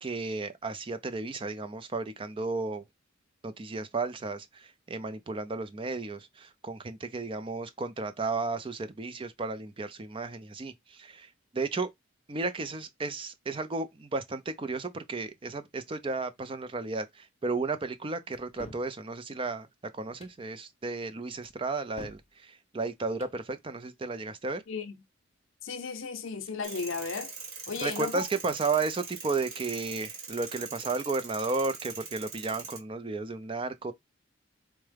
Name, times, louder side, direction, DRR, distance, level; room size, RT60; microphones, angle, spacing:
voice 1, 0.0-2.8 3.4-11.9 12.3-19.7 19.9-24.6 27.8-33.9, right 3 dB, 25° right, 0.4 m, -33 dB
sound 1, 18.3-18.9 20.0-20.4 21.4-22.3 23.0-23.4, left 1 dB, 30° left, 0.6 m, -48 dB
voice 2, 25.6-27.3 27.7-28.2, left 5 dB, 70° left, 0.6 m, -35 dB
sound 2, 26.6-32.8, right 5 dB, 90° right, 1.3 m, -42 dB
4.5 x 2.1 x 3.3 m
head